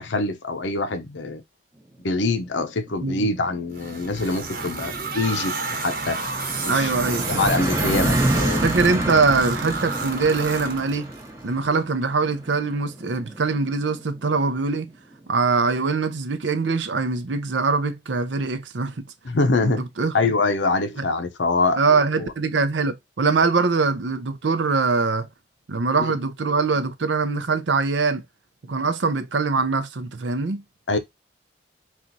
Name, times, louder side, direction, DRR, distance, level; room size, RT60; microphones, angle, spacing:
voice 1, 0.0-1.4 2.0-6.2 6.6-6.9 7.3-8.6 19.2-19.8 20.1-21.8 22.2-22.3 26.0-26.1 30.9-31.0, left 3 dB, 85° left, 0.7 m, -24 dB
sound 1, 3.2-14.5, right 1 dB, 15° right, 0.7 m, -29 dB
sound 2, 3.7-11.3, right 4 dB, 50° right, 1.0 m, -31 dB
voice 2, 6.7-7.3 7.8-7.9 8.6-11.1 11.4-14.9 15.3-19.0 19.6-20.1 21.0-21.1 21.8-25.3 25.7-28.2 28.7-30.6, right 4 dB, 85° right, 0.6 m, -23 dB
4.3 x 2.4 x 3.9 m
head